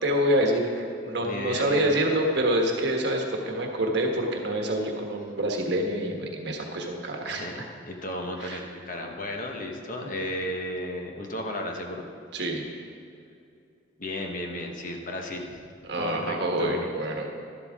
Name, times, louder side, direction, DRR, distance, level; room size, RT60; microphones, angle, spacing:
voice 1, 0.0-7.6 8.4-8.6 12.3-12.6 15.8-17.3, right 1 dB, 60° right, 1 dB, 1.3 m, -27 dB
voice 2, 1.2-1.9 7.3-7.5 7.8-12.0 14.0-15.6 15.9-16.8, left 1 dB, 45° left, 2 dB, 1.1 m, -34 dB
12.0 x 11.5 x 3.6 m, 2.5 s
head